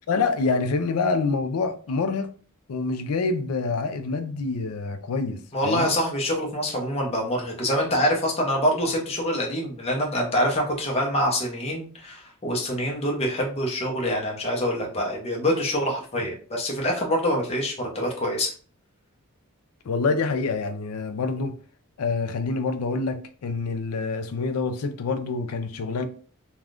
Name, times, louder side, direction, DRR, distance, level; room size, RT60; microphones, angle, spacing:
voice 1, 0.1-2.3 2.7-5.9 19.9-21.6 22.0-26.1, left 4 dB, 75° left, 0.4 m, -26 dB
voice 2, 5.5-18.5, equal, 30° left, 0.7 m, -25 dB
3.4 x 2.3 x 2.4 m
head